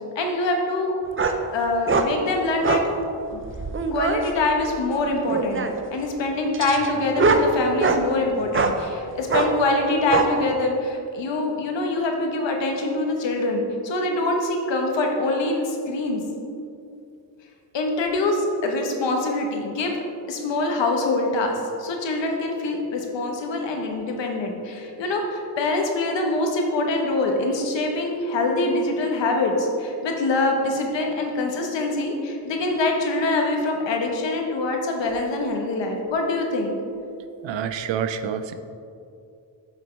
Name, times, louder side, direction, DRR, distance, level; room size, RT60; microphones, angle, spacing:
voice 1, 0.1-0.9 1.3-2.8 3.3-3.4 3.9-5.6 5.9-16.2 17.7-20.0 20.3-36.7, left 2 dB, 85° left, 2 dB, 1.2 m, -24 dB
sound 1, 1.2-1.4 1.9-2.1 2.6-2.9 3.4-4.2 5.2-5.8 6.5-8.0 8.5-8.8 9.3-9.5 10.1-10.3, right 3 dB, 30° right, 0.6 m, -22 dB
voice 2, 37.4-38.5, right 8 dB, 85° right, 10 dB, 0.6 m, -27 dB
8.5 x 6.4 x 3.2 m, 2.6 s
cardioid pair, 75°, 43 cm